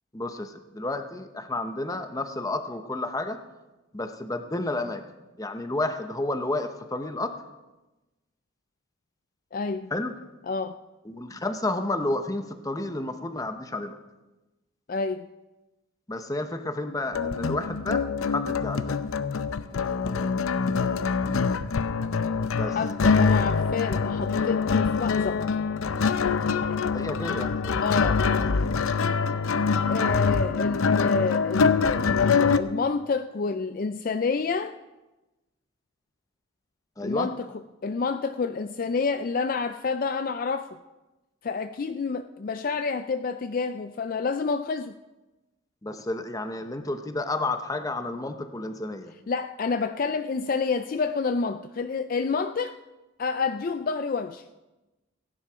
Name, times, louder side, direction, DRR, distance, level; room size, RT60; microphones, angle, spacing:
voice 1, 0.1-3.4 3.9-5.0 5.4-7.3 9.9-10.1 11.0-14.0 16.1-19.0 22.6-22.8 26.9-27.8 37.0-37.3 45.8-49.1, left 2 dB, 15° left, 8 dB, 0.8 m, -31 dB
voice 2, 9.5-9.9 10.5-10.8 14.9-15.3 22.7-25.4 27.8-28.3 29.9-34.7 37.0-40.7 41.4-45.0 49.3-52.8 53.2-54.4, left 4 dB, 40° left, 10 dB, 0.4 m, -28 dB
sound 1, 17.1-32.6, left 5 dB, 85° left, 0.6 m, -24 dB
16.0 x 10.5 x 4.9 m, 1.1 s
head